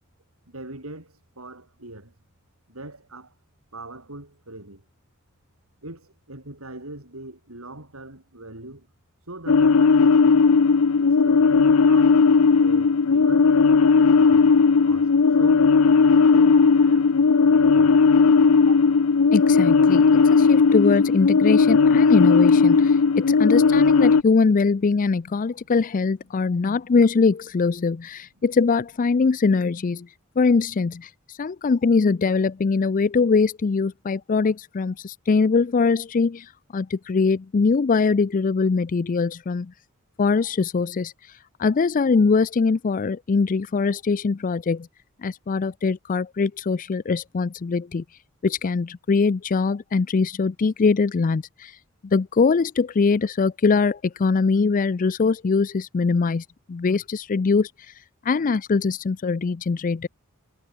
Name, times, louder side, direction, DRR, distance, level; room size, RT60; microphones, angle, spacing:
voice 1, 0.5-2.1 2.7-3.3 3.7-4.8 5.8-8.9 9.2-10.4 11.0-12.2 12.6-13.6 13.9-14.5 14.8-15.8 16.0-17.1 17.5-18.0 18.7-18.8 26.3-26.6, right 2 dB, 85° right, 6.5 m, -41 dB
sound 1, 9.5-24.2, left 5 dB, 85° left, 0.6 m, -16 dB
voice 2, 19.3-30.1 30.4-39.7 40.2-41.1 41.6-44.9 45.2-48.0 48.4-51.8 52.0-57.7 58.2-60.1, left 4 dB, 40° left, 0.4 m, -22 dB
head